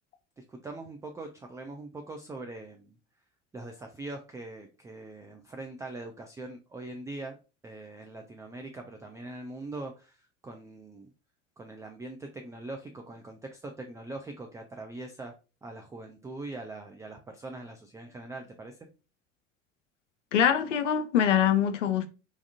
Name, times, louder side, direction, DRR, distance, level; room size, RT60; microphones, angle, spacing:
voice 1, 0.4-3.0 3.5-7.3 7.6-11.1 11.6-15.3 15.6-18.8, right 2 dB, 10° right, 0.4 m, -42 dB
voice 2, 20.3-22.1, left 9 dB, 80° left, 0.5 m, -24 dB
3.5 x 3.2 x 2.6 m
figure-of-eight pair, 65°, 36 cm